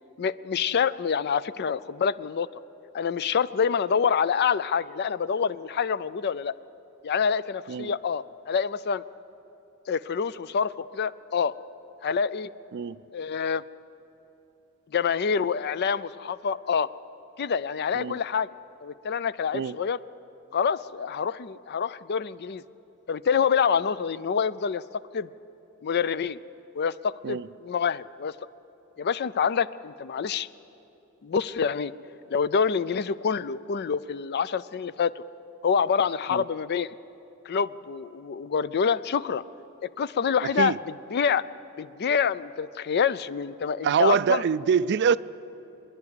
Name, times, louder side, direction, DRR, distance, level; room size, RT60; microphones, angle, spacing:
voice 1, 0.2-2.5 2.9-6.5 7.0-9.0 9.9-11.5 12.0-12.5 13.1-13.6 14.9-16.9 17.4-18.5 18.8-20.0 20.5-22.6 23.1-24.8 25.1-25.3 25.8-26.4 26.8-28.3 29.0-30.5 31.2-31.9 32.3-35.2 35.6-37.0 37.5-39.4 40.0-40.7 41.1-41.4 41.8-44.4, left 6 dB, 50° left, 0.4 m, -26 dB
voice 2, 43.8-45.2, right 7 dB, 55° right, 0.4 m, -24 dB
25.0 x 11.0 x 9.6 m
head